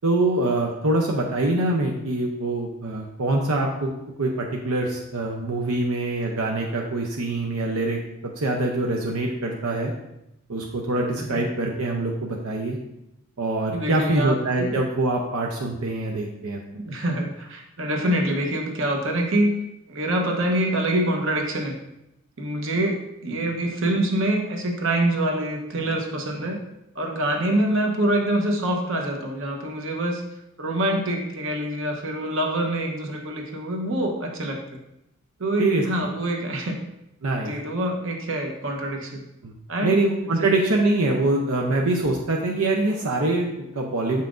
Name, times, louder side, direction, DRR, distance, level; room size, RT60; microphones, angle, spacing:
voice 1, 0.0-3.9 4.2-8.0 8.4-9.9 10.5-12.8 13.4-16.6 35.6-35.8 37.2-37.5 39.4-39.5 39.8-44.2, right 2 dB, 85° right, 0 dB, 0.7 m, -24 dB
voice 2, 13.7-14.7 16.7-19.5 19.9-21.7 22.4-23.0 23.2-26.6 26.9-30.2 30.6-34.8 35.4-36.8 37.4-39.2 39.7-40.0 40.4-40.5, right 1 dB, 60° right, 2 dB, 0.9 m, -25 dB
7.1 x 5.6 x 2.5 m, 0.86 s
head